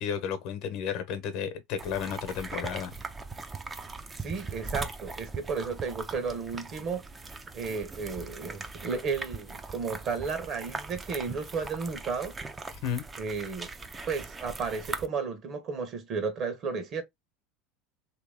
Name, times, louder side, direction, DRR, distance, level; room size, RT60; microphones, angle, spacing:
voice 1, 0.0-2.9 12.8-13.0, left 8 dB, 60° left, 0.9 m, -32 dB
sound 1, 1.8-15.1, right 3 dB, 20° right, 0.5 m, -40 dB
voice 2, 4.2-7.0 7.5-12.3 13.2-13.7 14.1-17.0, right 5 dB, 45° right, 1.1 m, -33 dB
3.0 x 2.9 x 3.5 m
supercardioid pair, 110°, 0 cm